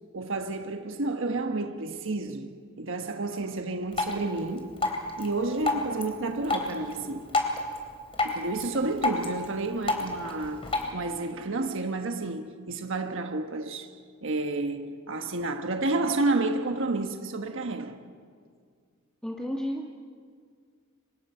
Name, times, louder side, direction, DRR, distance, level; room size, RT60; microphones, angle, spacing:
voice 1, 0.1-4.7 5.2-7.4 8.2-18.0, right 2 dB, 65° right, 1.3 m, -30 dB
Drip, 3.9-10.9, left 2 dB, 25° left, 3.6 m, -32 dB
voice 2, 19.2-19.9, equal, 5° left, 1.5 m, -32 dB
29.5 x 25.5 x 5.7 m
head